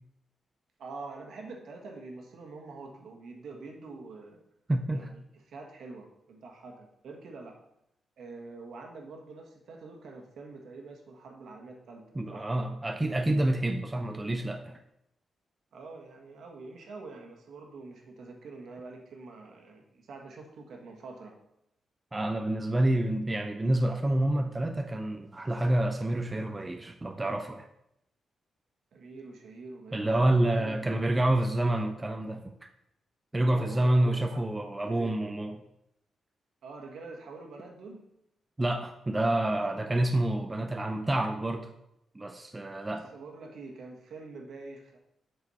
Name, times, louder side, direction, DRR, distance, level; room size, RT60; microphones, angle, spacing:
voice 1, 0.8-4.4 4.9-7.6 8.2-12.5 15.7-21.4 22.9-23.1 28.9-31.0 33.5-34.5 34.8-35.2 36.6-38.1 39.5-39.7 42.9-45.0, right 3 dB, 70° right, 2 dB, 1.6 m, -45 dB
voice 2, 4.7-5.1 12.2-14.8 22.1-27.6 29.9-32.4 33.3-35.6 38.6-41.7 42.2-43.1, right 1 dB, 15° right, 5 dB, 0.5 m, -28 dB
7.9 x 6.4 x 4.2 m, 0.80 s
wide cardioid pair, 160°, 0 cm